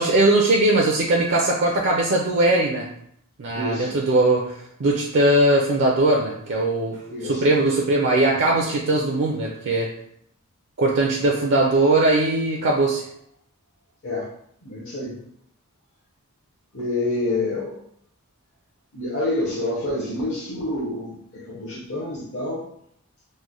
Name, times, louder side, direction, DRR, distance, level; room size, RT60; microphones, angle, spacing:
voice 1, 0.0-2.9 3.4-9.9 10.8-13.0, right 2 dB, 55° right, 0 dB, 0.4 m, -20 dB
voice 2, 3.5-4.0 7.1-7.6 14.0-14.3 14.6-15.2 16.7-17.8 18.9-22.6, left 2 dB, 60° left, -7 dB, 0.8 m, -28 dB
3.1 x 2.1 x 3.7 m, 0.70 s
head